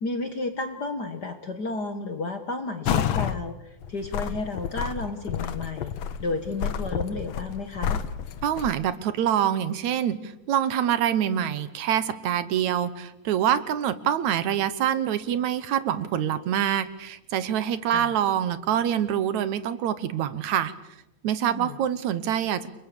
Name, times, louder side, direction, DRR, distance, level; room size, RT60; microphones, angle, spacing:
voice 1, 0.0-5.9 6.2-8.0 17.9-18.1 21.5-21.8, left 3 dB, 45° left, 8 dB, 1.5 m, -32 dB
sound 1, 2.9-3.4 3.8-8.7, left 8 dB, 65° left, 2.2 m, -29 dB
voice 2, 8.4-20.7 21.2-22.7, right 10 dB, 70° right, 14 dB, 2.4 m, -25 dB
29.5 x 23.0 x 6.9 m, 0.83 s
omnidirectional pair, 3.5 m